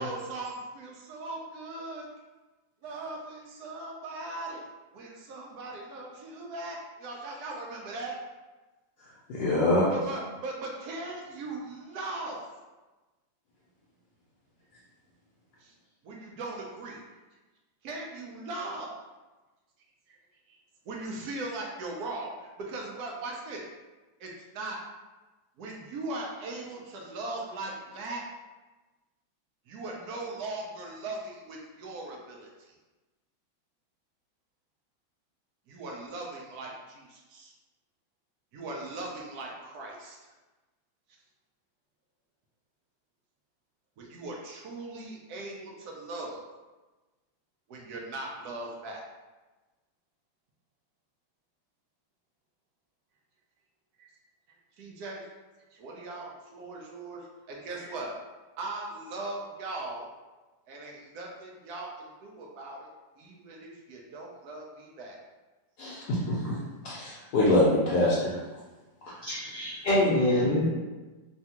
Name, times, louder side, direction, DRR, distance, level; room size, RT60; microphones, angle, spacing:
voice 1, 0.0-2.1 2.8-4.6 4.9-8.2 9.9-12.4 15.6-15.7 16.0-17.0 17.8-18.9 20.1-20.2 20.5-20.6 20.9-23.6 24.2-24.8 25.6-28.2 29.7-32.5 35.7-37.5 38.5-40.2 44.0-46.4 47.7-49.0 54.0-54.1 54.8-55.3 55.7-58.2 58.6-60.1 60.7-62.9 63.2-65.2, right 2 dB, 70° right, -1 dB, 1.0 m, -39 dB
voice 2, 9.3-9.9 65.8-66.6 66.8-68.3, left 1 dB, 70° left, -7 dB, 1.1 m, -24 dB
voice 3, 69.2-70.7, left 1 dB, 85° left, -8 dB, 0.5 m, -25 dB
3.3 x 2.3 x 2.8 m, 1.2 s
omnidirectional pair, 1.9 m